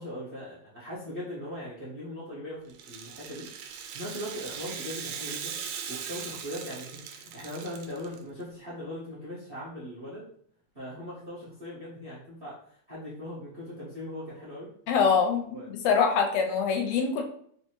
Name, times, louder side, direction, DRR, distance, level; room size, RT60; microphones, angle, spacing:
voice 1, 0.0-3.5 3.9-5.5 5.9-10.2 10.7-14.7 15.5-15.7, left 1 dB, 65° right, -9 dB, 0.5 m, -39 dB
Rattle (instrument), 2.7-8.2, right 7 dB, 80° right, 1.7 m, -39 dB
voice 2, 14.9-17.2, left 6 dB, 80° left, 3 dB, 1.6 m, -24 dB
4.5 x 2.7 x 3.0 m, 0.62 s
omnidirectional pair, 3.3 m